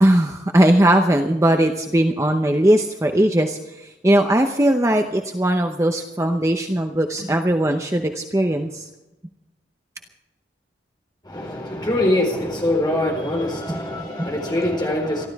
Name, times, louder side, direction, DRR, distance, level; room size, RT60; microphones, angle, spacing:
voice 1, 0.0-8.9 13.7-14.3, right 1 dB, 15° right, 4 dB, 0.8 m, -19 dB
voice 2, 11.2-15.3, left 1 dB, 25° left, 0 dB, 4.2 m, -23 dB
27.5 x 12.5 x 3.6 m, 0.99 s
head